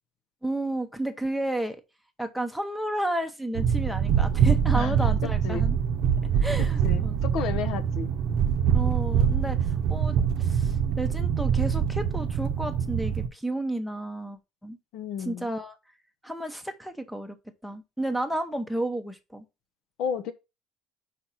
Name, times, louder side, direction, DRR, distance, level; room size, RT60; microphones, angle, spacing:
voice 1, 0.4-1.8 2.2-5.8 6.4-7.2 8.7-14.8 15.2-15.8 16.2-17.4 17.6-19.4, right 1 dB, ahead, 0.8 m, -32 dB
sound 1, 3.6-13.3, right 8 dB, 60° right, 0.7 m, -24 dB
voice 2, 5.2-5.6 6.3-6.4 6.8-8.1 14.9-15.5 20.0-20.3, left 7 dB, 65° left, 0.8 m, -32 dB
5.1 x 4.3 x 5.8 m
cardioid pair, 160°, 0 cm